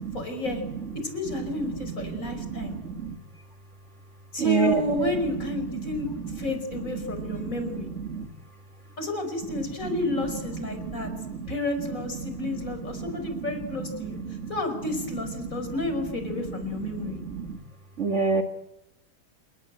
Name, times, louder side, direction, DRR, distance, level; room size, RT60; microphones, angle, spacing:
voice 1, 0.1-0.6 1.0-2.7 4.3-6.1 6.4-7.9 9.0-11.1 11.5-14.2 14.5-17.2, left 2 dB, 35° left, 6 dB, 5.4 m, -31 dB
voice 2, 1.9-3.1 4.4-5.1 5.8-5.9 6.2-6.3 7.3-7.7 8.1-8.3 10.7-11.5 12.2-12.5 12.9-13.4 14.1-14.5 15.4-15.6 16.3-16.4 16.8-17.6 18.0-18.4, right 5 dB, 35° right, 7 dB, 1.7 m, -30 dB
30.0 x 18.0 x 9.0 m, 0.91 s
omnidirectional pair, 2.3 m